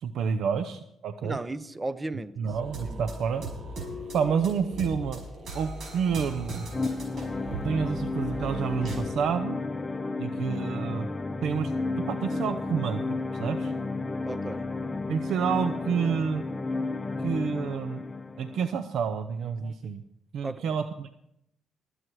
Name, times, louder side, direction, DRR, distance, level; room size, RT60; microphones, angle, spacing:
voice 1, 0.0-1.4 2.4-3.4 4.1-5.2 5.5-6.7 7.5-9.6 10.2-11.1 11.4-11.7 12.0-13.0 13.4-13.7 15.1-16.4 17.2-18.0 18.4-20.0 20.3-21.1, right 6 dB, 70° right, 0.7 m, -29 dB
voice 2, 1.2-2.5 2.8-3.1 14.3-14.7 20.4-20.8, right 2 dB, 20° right, 0.7 m, -35 dB
sound 1, 2.5-9.1, right 1 dB, 55° right, 5.6 m, -39 dB
sound 2, 6.7-18.7, left 3 dB, 20° left, 0.7 m, -32 dB
20.0 x 8.1 x 4.7 m
cardioid pair, 90°, 0 cm